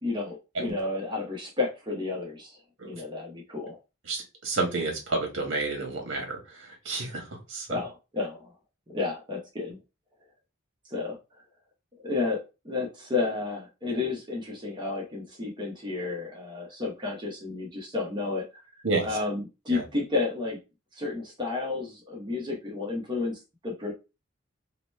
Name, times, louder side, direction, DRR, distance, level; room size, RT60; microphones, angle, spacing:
voice 1, 0.0-3.8 7.7-8.5 8.9-9.8 10.9-11.2 12.0-12.4 12.6-18.4 19.0-20.6 21.0-23.9, left 3 dB, 20° right, -1 dB, 0.8 m, -31 dB
voice 2, 4.1-7.8 18.8-19.2 19.7-19.8, right 3 dB, 65° right, 2 dB, 1.2 m, -30 dB
2.9 x 2.1 x 3.1 m, 0.28 s
head